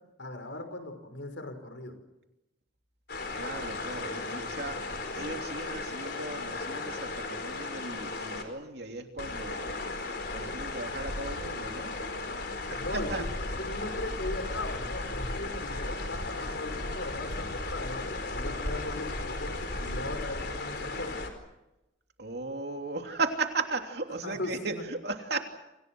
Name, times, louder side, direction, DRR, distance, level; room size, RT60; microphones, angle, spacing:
voice 1, 0.2-2.0 12.8-13.3 13.6-21.2 24.2-24.8, left 2 dB, 75° left, 7 dB, 5.6 m, -38 dB
sound 1, 3.1-8.4 9.2-21.3, left 2 dB, 55° left, 4.6 m, -35 dB
voice 2, 3.3-9.8 10.3-11.9 12.7-13.3 22.2-25.4, right 3 dB, 55° right, 4 dB, 3.1 m, -36 dB
29.0 x 27.0 x 6.3 m, 0.94 s
head